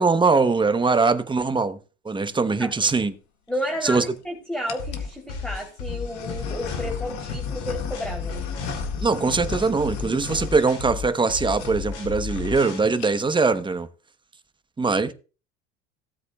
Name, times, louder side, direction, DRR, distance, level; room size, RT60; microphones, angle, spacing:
voice 1, 0.0-1.8 2.0-3.1 3.8-4.0 9.0-13.9 14.8-15.1, right 4 dB, 15° right, 0.9 m, -22 dB
sound 1, 2.5-3.0 3.7-4.2 4.7-5.1 5.8-11.3 11.6-11.7 12.0-12.1 12.3-12.6 12.9-13.4, left 5 dB, 55° left, 1.8 m, -36 dB
voice 2, 3.5-8.4, equal, 5° left, 3.1 m, -32 dB
sound 2, 4.8-12.8, left 5 dB, 80° left, 3.5 m, -33 dB
16.5 x 8.0 x 2.3 m
hypercardioid pair, 80°, 35 cm